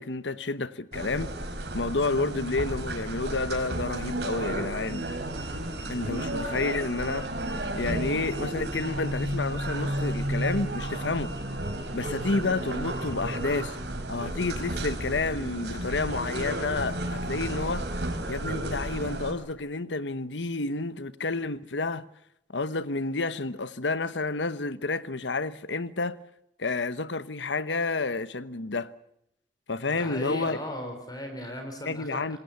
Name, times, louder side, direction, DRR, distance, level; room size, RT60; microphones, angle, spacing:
voice 1, 0.0-1.3 1.7-5.1 5.9-7.3 7.8-11.3 11.9-13.8 14.1-17.9 18.3-22.1 22.5-26.2 26.6-28.9 29.7-30.6 31.8-32.4, left 3 dB, 80° left, 1.1 m, -30 dB
sound 1, 0.9-19.3, right 1 dB, 65° right, 4.7 m, -32 dB
voice 2, 29.9-32.4, left 1 dB, 20° left, 3.8 m, -37 dB
26.5 x 20.0 x 7.1 m
head